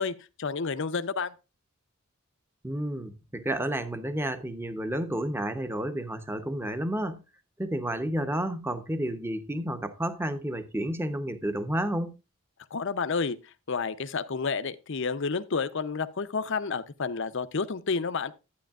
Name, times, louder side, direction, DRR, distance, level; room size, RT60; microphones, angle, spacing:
voice 1, 0.0-1.3 12.7-13.4 13.7-18.3, left 4 dB, 55° left, 0.6 m, -30 dB
voice 2, 2.6-7.2 7.6-12.2, right 1 dB, 10° right, 0.8 m, -31 dB
11.5 x 9.6 x 2.4 m
head